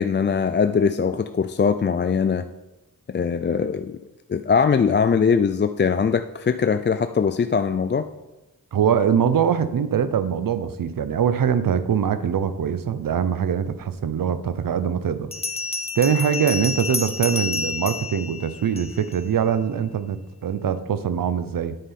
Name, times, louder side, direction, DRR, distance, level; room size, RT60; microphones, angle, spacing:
voice 1, 0.0-2.4 3.1-4.0 4.3-8.1, left 6 dB, 35° left, 9 dB, 0.4 m, -21 dB
voice 2, 8.7-15.3 16.0-21.8, right 8 dB, 85° right, 12 dB, 0.6 m, -23 dB
Bell, 15.3-19.2, left 3 dB, 20° left, 0.8 m, -29 dB
9.9 x 5.5 x 4.2 m, 1.0 s
cardioid pair, 50°, 33 cm